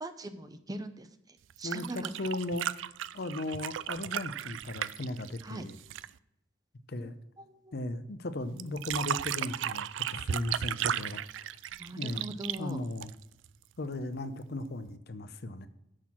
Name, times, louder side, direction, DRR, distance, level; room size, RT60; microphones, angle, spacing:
voice 1, 0.0-2.1 5.4-5.7 7.0-7.1 7.4-7.8 11.8-12.8, right 1 dB, 20° right, 10 dB, 0.6 m, -41 dB
sound 1, 1.5-6.2 8.6-13.5 14.9-15.0, right 10 dB, 70° right, 0.3 m, -35 dB
voice 2, 1.6-5.8 6.9-7.1 7.7-11.5 12.0-12.2 12.6-13.1 13.8-15.7, left 2 dB, 55° left, 11 dB, 0.7 m, -37 dB
6.5 x 6.0 x 7.2 m, 0.83 s
head